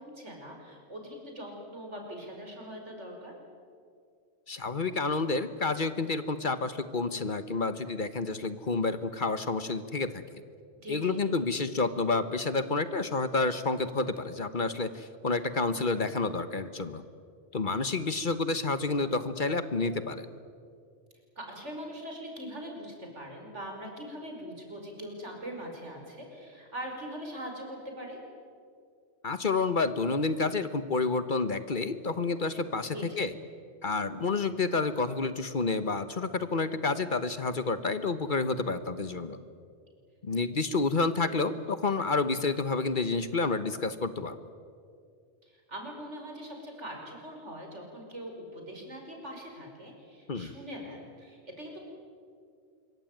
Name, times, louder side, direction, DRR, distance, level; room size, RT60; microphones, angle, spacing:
voice 1, 0.0-3.3 10.8-11.2 21.4-28.2 32.9-33.3 45.5-51.8, equal, 80° right, 2 dB, 5.7 m, -42 dB
voice 2, 4.5-10.2 10.9-17.0 17.5-20.3 29.2-33.3 33.8-39.4 40.2-44.4 50.3-50.5, left 3 dB, 45° left, 12 dB, 1.2 m, -29 dB
26.0 x 23.0 x 9.2 m, 2.2 s
omnidirectional pair, 1.2 m